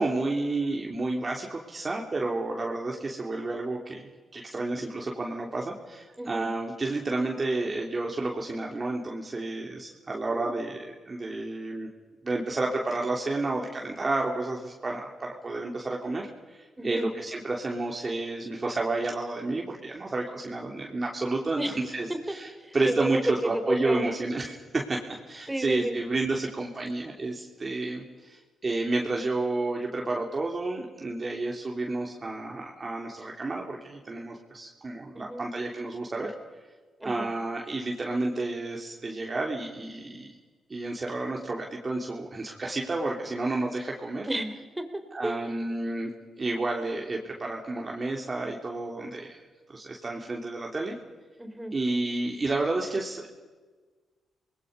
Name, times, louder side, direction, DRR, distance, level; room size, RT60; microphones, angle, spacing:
voice 1, 0.0-11.9 12.2-25.0 25.3-36.3 37.0-40.3 40.7-44.4 45.1-46.1 46.4-49.4 49.7-51.0 51.7-53.3, right 2 dB, 40° right, -1 dB, 3.2 m, -31 dB
voice 2, 6.2-6.5 10.3-10.5 16.8-17.1 21.6-21.8 22.1-22.2 22.6-23.2 23.7-24.1 25.5-26.0 35.1-35.5 37.0-37.3 44.3-45.5 51.4-51.7, right 1 dB, 15° right, 7 dB, 3.7 m, -32 dB
28.5 x 20.5 x 5.4 m, 1.4 s
supercardioid pair, 45°, 0 cm